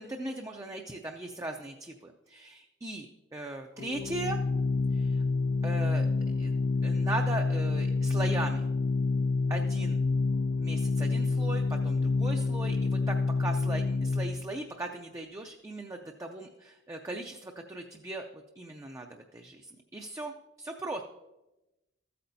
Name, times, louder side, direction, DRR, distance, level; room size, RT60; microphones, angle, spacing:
voice 1, 0.0-4.4 4.9-5.2 5.6-6.1 6.4-6.5 6.8-8.7 9.5-10.0 10.6-18.3 18.6-20.3 20.6-21.0, right 2 dB, 15° right, 3 dB, 0.4 m, -38 dB
Organ, 3.8-14.5, left 3 dB, 70° left, 0.3 m, -28 dB
14.0 x 8.4 x 2.7 m, 1.0 s
head